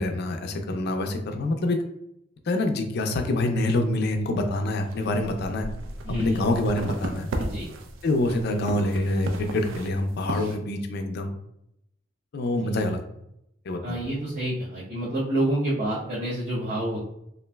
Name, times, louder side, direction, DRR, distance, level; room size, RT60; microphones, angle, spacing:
voice 1, 0.0-1.8 2.5-5.7 6.2-7.3 8.0-11.4 12.3-13.0 13.7-14.0, left 1 dB, 55° left, 5 dB, 0.4 m, -26 dB
sound 1, 4.8-10.6, right 1 dB, 80° right, 0.4 m, -35 dB
voice 2, 6.0-6.4 7.4-7.7 12.6-12.7 13.8-17.0, right 1 dB, 40° right, -9 dB, 0.7 m, -28 dB
3.0 x 2.5 x 2.2 m, 0.78 s
head